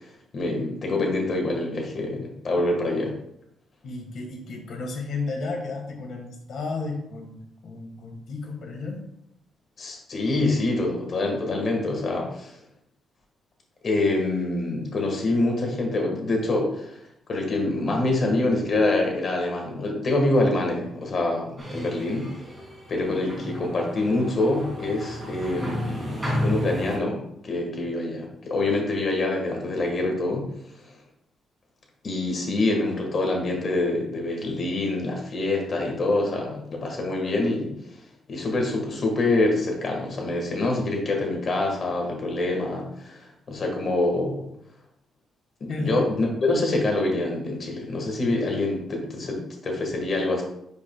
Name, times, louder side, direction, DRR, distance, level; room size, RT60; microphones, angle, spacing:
voice 1, 0.3-3.1 9.8-12.6 13.8-17.0 17.3-22.3 22.9-30.5 32.0-37.7 38.3-44.5 45.6-50.4, left 2 dB, 35° left, 1 dB, 1.6 m, -25 dB
voice 2, 3.8-9.0 45.7-46.3, left 3 dB, 55° left, 2 dB, 1.6 m, -33 dB
sound 1, 21.6-27.0, equal, 10° right, 2.4 m, -32 dB
10.5 x 5.3 x 2.3 m, 0.77 s
cardioid pair, 180°, 0 cm